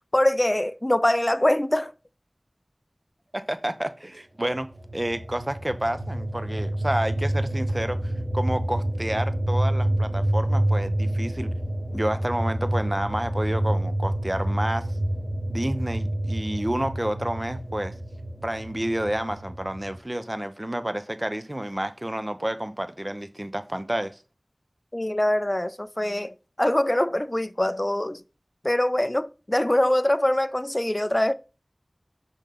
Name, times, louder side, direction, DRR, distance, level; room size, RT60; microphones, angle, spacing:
voice 1, 0.1-1.9 24.9-28.2 28.6-31.3, left 1 dB, 30° left, 0.5 m, -23 dB
voice 2, 3.3-11.5 11.9-14.9 15.5-18.0 18.4-24.2, right 1 dB, 30° right, 0.9 m, -30 dB
sound 1, 4.6-19.9, right 1 dB, 65° right, 3.2 m, -28 dB
5.7 x 5.4 x 5.9 m
wide cardioid pair, 40°, 0 cm